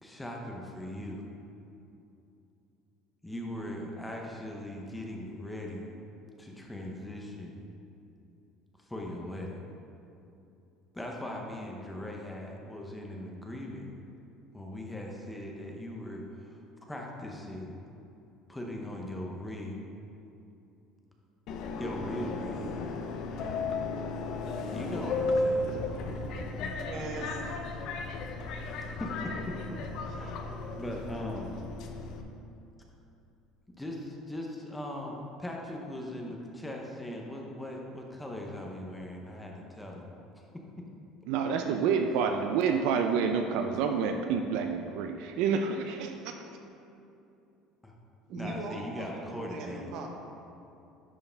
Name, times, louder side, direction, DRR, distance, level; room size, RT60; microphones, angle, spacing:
voice 1, 0.0-1.2 3.2-5.9 6.4-7.6 8.8-9.6 10.9-13.9 14.5-17.8 18.5-19.9 21.8-22.8 24.7-25.7 29.0-29.8 30.1-30.4 30.8-31.6 33.7-40.8 47.8-47.9 48.3-49.9, left 1 dB, 5° left, 0 dB, 0.8 m, -39 dB
Subway metro underground, 21.5-32.2, left 3 dB, 55° left, 0.6 m, -34 dB
voice 2, 26.8-27.4 48.3-50.1, right 3 dB, 55° right, 2 dB, 1.0 m, -39 dB
voice 3, 41.3-46.4, right 6 dB, 70° right, 5 dB, 0.4 m, -28 dB
10.5 x 4.7 x 3.4 m, 2.7 s
cardioid pair, 155°, 0 cm